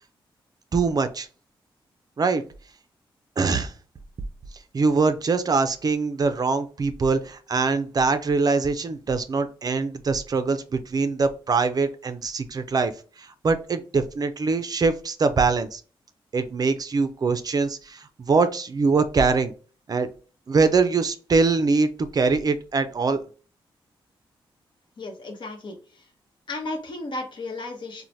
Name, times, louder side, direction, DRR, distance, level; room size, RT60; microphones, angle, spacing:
voice 1, 0.7-1.3 2.2-2.4 3.4-3.7 4.7-12.9 13.2-15.8 16.3-19.5 19.9-20.1 20.5-23.2, right 4 dB, 45° right, 10 dB, 0.4 m, -23 dB
voice 2, 25.0-26.1 26.5-28.0, left 2 dB, 55° left, 4 dB, 0.8 m, -34 dB
3.1 x 2.1 x 2.6 m, 0.38 s
cardioid pair, 65°, 9 cm